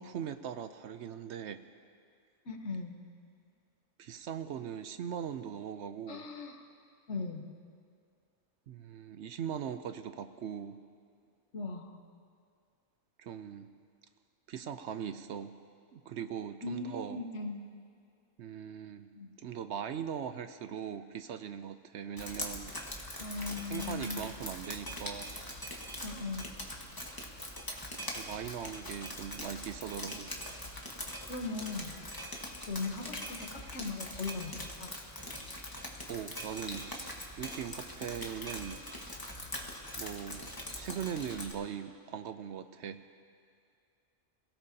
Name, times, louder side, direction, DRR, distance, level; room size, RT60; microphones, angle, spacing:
voice 1, 0.0-1.6 4.0-6.3 8.7-10.8 13.2-13.7 14.5-15.5 15.9-17.2 18.4-19.1 19.4-22.7 23.7-25.4 28.2-30.3 36.1-38.8 40.0-40.5 40.8-43.0, right 8 dB, 70° right, 10 dB, 0.8 m, -40 dB
voice 2, 2.4-3.0 6.1-6.6 7.1-7.5 11.5-12.0 16.6-17.6 19.1-19.3 23.2-24.3 26.0-26.5 31.3-32.0 32.6-34.9, left 3 dB, 65° left, 3 dB, 1.5 m, -38 dB
Drip, 22.2-41.5, left 1 dB, 15° left, 1.4 m, -42 dB
27.5 x 17.0 x 2.8 m, 2.2 s
omnidirectional pair, 1.3 m